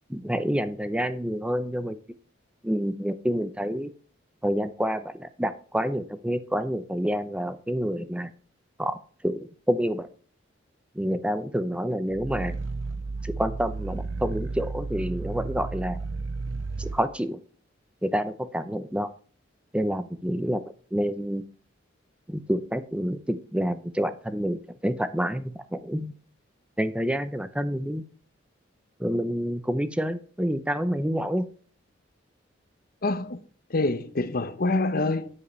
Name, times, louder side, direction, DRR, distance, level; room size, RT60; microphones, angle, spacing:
voice 1, 0.1-2.0 2.6-3.9 4.4-8.3 8.8-9.0 9.2-10.1 10.9-12.5 13.2-16.0 16.8-17.4 18.0-19.1 19.7-20.6 20.9-21.4 22.3-26.1 26.8-28.0 29.0-31.5, equal, 5° right, 0.7 m, -28 dB
Growling, 12.1-17.0, right 3 dB, 85° right, 0.7 m, -33 dB
voice 2, 33.0-33.4 33.7-35.4, left 2 dB, 50° left, 0.9 m, -26 dB
9.6 x 7.8 x 3.3 m
head